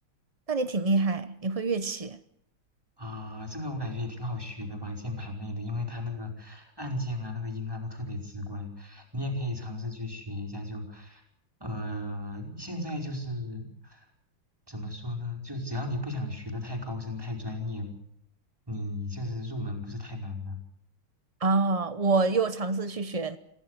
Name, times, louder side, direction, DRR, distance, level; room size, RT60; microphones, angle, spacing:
voice 1, 0.5-2.2 21.4-23.4, right 3 dB, 45° right, 0.4 m, -26 dB
voice 2, 3.0-11.2 11.6-14.1 14.7-17.9 18.7-20.6, left 1 dB, 10° right, 4.9 m, -35 dB
26.5 x 16.5 x 8.0 m
omnidirectional pair, 2.1 m